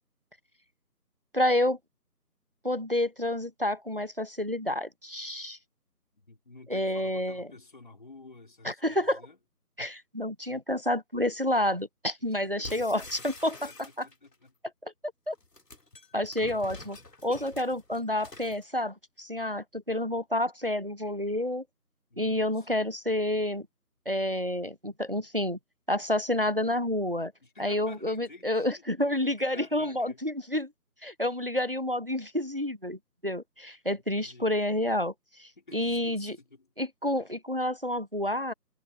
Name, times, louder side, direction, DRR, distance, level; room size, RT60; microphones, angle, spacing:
voice 1, 1.3-1.8 2.6-5.6 6.7-7.5 8.6-9.2 9.8-14.1 14.8-14.9 15.3-15.4 16.1-21.6 22.2-23.7 24.1-25.6 25.9-27.3 27.6-30.7 31.0-36.4 36.8-38.5, left 1 dB, 35° right, 0.8 m, -29 dB
voice 2, 6.1-9.4 12.4-13.1 13.6-14.5 22.1-22.9 27.4-30.2 33.9-34.5 35.6-36.7, left 3 dB, 30° left, 3.6 m, -52 dB
sound 1, 12.6-14.3 15.3-18.6, left 2 dB, 80° left, 3.4 m, -47 dB
figure-of-eight pair, 175°, 48 cm